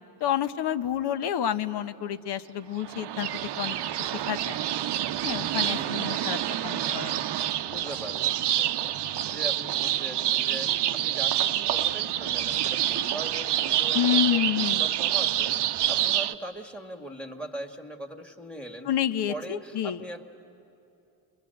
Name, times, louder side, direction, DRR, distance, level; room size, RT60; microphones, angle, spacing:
voice 1, 0.2-3.3 3.6-4.6 5.2-6.4 6.6-7.3 13.9-14.8 18.9-20.0, left 10 dB, 60° left, 12 dB, 1.0 m, -29 dB
Easter Morning Birds & Bells, 2.8-16.3, right 12 dB, 60° right, 0.8 m, -27 dB
voice 2, 5.7-6.7 7.7-8.9 9.2-20.3, right 1 dB, 5° left, 6 dB, 1.9 m, -41 dB
29.0 x 22.5 x 7.8 m, 2.7 s
supercardioid pair, 80°, 46 cm